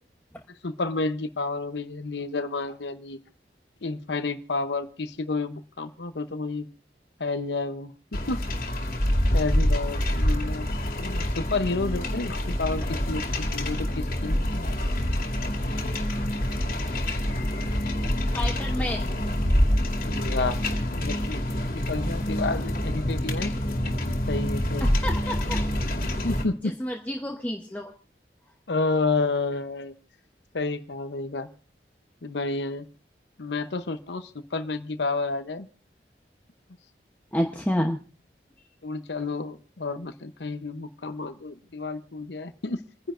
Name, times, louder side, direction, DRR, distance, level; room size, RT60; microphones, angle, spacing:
voice 1, 0.6-3.2 3.8-6.7 7.2-7.9 8.3-8.4 9.3-10.7 11.0-14.8 20.0-20.6 20.9-21.4 21.7-23.5 24.3-25.0 26.2-26.8 28.7-30.0 30.5-31.5 32.2-32.9 33.4-35.7 38.8-42.8, left 3 dB, 80° left, 9 dB, 0.8 m, -30 dB
sound 1, 8.1-26.4, left 1 dB, 50° left, 2.3 m, -26 dB
voice 2, 18.3-19.1 25.0-25.7 26.8-27.9 37.3-38.0, left 1 dB, 10° left, 2 dB, 0.8 m, -29 dB
28.5 x 10.5 x 2.5 m, 0.39 s
head